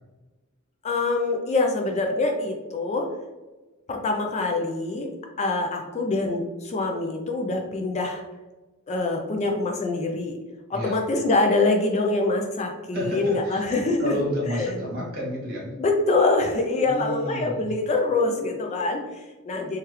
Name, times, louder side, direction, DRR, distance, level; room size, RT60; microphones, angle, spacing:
voice 1, 0.8-3.1 3.9-5.1 5.4-8.2 8.9-10.4 10.7-14.1 14.5-14.7 15.8-19.8, left 3 dB, 30° left, 2 dB, 0.3 m, -25 dB
voice 2, 10.7-11.0 12.9-13.6 14.0-15.7 16.8-17.7, equal, 45° right, -5 dB, 1.2 m, -30 dB
2.9 x 2.3 x 3.2 m, 1.2 s
head